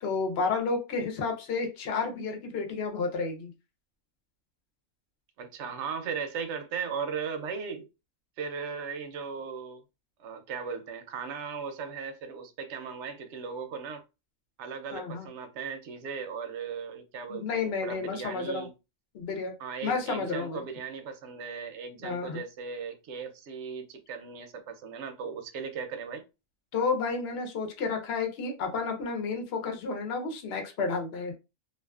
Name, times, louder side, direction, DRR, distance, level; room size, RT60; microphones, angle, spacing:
voice 1, 0.0-3.5 14.9-15.3 17.3-18.7 19.1-19.6 19.8-20.6 22.0-22.4 26.7-31.4, left 4 dB, 55° left, 0.9 m, -31 dB
voice 2, 5.4-7.9 8.4-9.8 10.2-14.0 14.6-18.7 19.6-26.2, right 6 dB, 65° right, 0.8 m, -37 dB
2.4 x 2.4 x 2.3 m
omnidirectional pair, 1.5 m